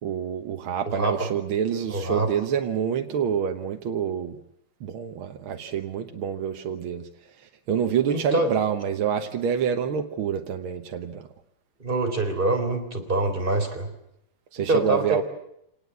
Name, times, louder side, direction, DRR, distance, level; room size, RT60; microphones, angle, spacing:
voice 1, 0.0-4.4 4.8-7.1 7.7-11.3 14.5-15.2, right 8 dB, 75° right, 5 dB, 2.0 m, -27 dB
voice 2, 0.8-1.2 1.9-2.3 8.1-8.5 11.8-13.9 14.7-15.2, right 2 dB, 25° right, 4 dB, 3.9 m, -25 dB
26.5 x 19.0 x 8.2 m, 0.78 s
omnidirectional pair, 2.3 m